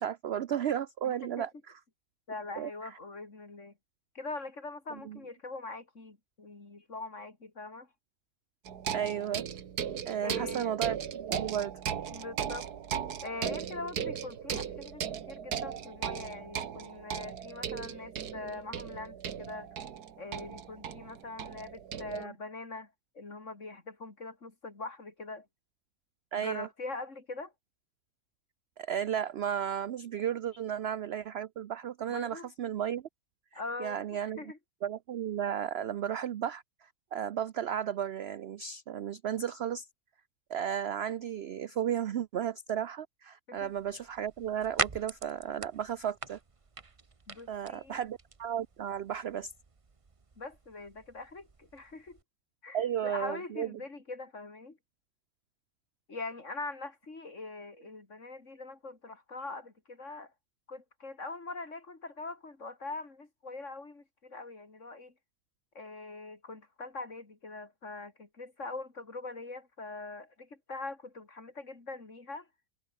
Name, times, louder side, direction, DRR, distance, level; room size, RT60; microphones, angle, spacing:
voice 1, 0.0-1.5 2.6-2.9 4.9-5.2 8.9-9.4 10.1-11.7 22.1-22.3 26.3-26.7 28.8-33.1 33.5-34.4 34.8-39.9 40.5-46.4 47.5-49.5 52.7-53.7, right 9 dB, 65° right, 0.6 m, -34 dB
voice 2, 1.0-1.5 2.3-3.7 4.2-7.9 10.2-10.8 12.1-12.7 13.2-19.7 20.2-25.5 26.3-27.5 32.1-32.5 33.5-34.0 34.4-34.6 43.5-43.7 47.3-48.0 50.4-52.2 52.6-54.8 56.1-60.3 60.7-65.1 65.8-72.5, left 3 dB, 50° left, 3.7 m, -42 dB
sound 1, 8.7-22.2, right 8 dB, 80° right, 1.8 m, -37 dB
sound 2, 43.6-52.2, right 4 dB, 25° right, 0.9 m, -42 dB
omnidirectional pair, 1.6 m